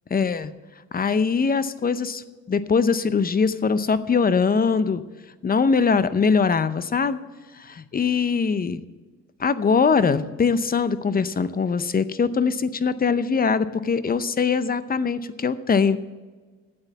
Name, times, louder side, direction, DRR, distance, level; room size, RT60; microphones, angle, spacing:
voice 1, 0.1-0.5 0.9-2.2 2.5-5.0 5.4-7.2 7.6-8.8 9.4-16.0, left 5 dB, 30° left, 14 dB, 0.7 m, -22 dB
9.1 x 8.0 x 8.2 m, 1.4 s
cardioid pair, 90°, 30 cm